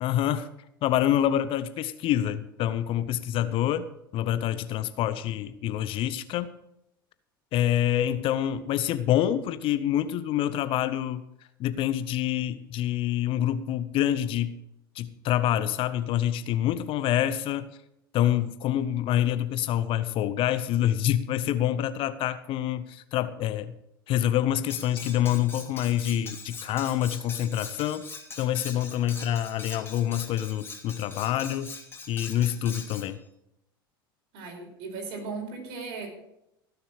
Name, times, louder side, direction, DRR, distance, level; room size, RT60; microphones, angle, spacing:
voice 1, 0.0-0.5 0.8-3.9 4.1-6.5 7.5-11.2 11.6-14.6 14.9-17.7 18.1-23.7 24.1-28.0 28.4-31.8 32.1-33.2, left 11 dB, 45° left, 13 dB, 0.8 m, -26 dB
Cutlery silverware, 24.7-33.1, left 4 dB, 20° left, 3.0 m, -42 dB
voice 2, 34.3-36.1, right 4 dB, 55° right, 1 dB, 4.9 m, -37 dB
16.5 x 6.9 x 6.5 m, 0.83 s
hypercardioid pair, 80°, 12 cm